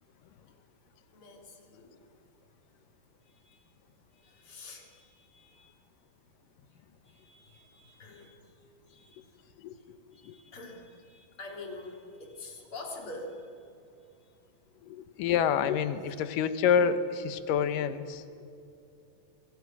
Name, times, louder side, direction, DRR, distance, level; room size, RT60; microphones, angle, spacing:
voice 1, 1.1-1.9 3.3-3.7 4.1-5.8 7.0-9.5 9.8-13.7 14.2-14.3 16.1-16.3, left 2 dB, 40° left, 1 dB, 4.0 m, -47 dB
voice 2, 14.9-18.4, left 7 dB, 75° left, 11 dB, 2.6 m, -27 dB
28.5 x 23.5 x 6.1 m, 2.6 s
omnidirectional pair, 4.1 m